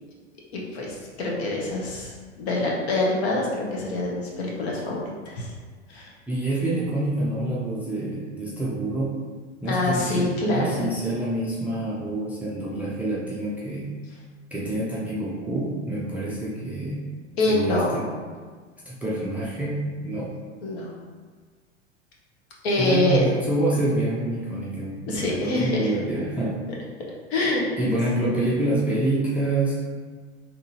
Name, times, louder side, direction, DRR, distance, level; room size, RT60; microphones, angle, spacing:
voice 1, 0.5-5.5 5.9-6.1 9.7-10.9 17.4-18.3 20.6-20.9 22.6-23.3 25.1-25.9 27.3-27.9, left 2 dB, 60° left, -3 dB, 1.1 m, -25 dB
voice 2, 6.3-9.2 9.6-13.9 14.5-17.1 17.5-18.0 18.9-20.3 22.8-26.6 27.8-29.8, right 1 dB, 5° right, -7 dB, 0.4 m, -27 dB
3.7 x 3.0 x 2.7 m, 1.5 s
hypercardioid pair, 95°, 36 cm